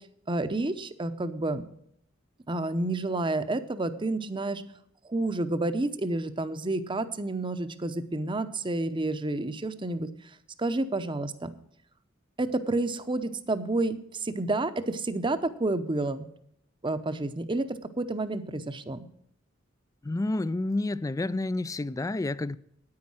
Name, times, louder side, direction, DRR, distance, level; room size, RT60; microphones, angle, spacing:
voice 1, 0.3-1.6 2.5-4.6 5.1-10.1 10.6-11.5 12.4-16.3 16.8-17.7 18.0-19.1, right 2 dB, 25° right, 0.8 m, -29 dB
voice 2, 20.0-22.6, left 2 dB, 15° left, 0.3 m, -29 dB
9.6 x 9.5 x 6.2 m
head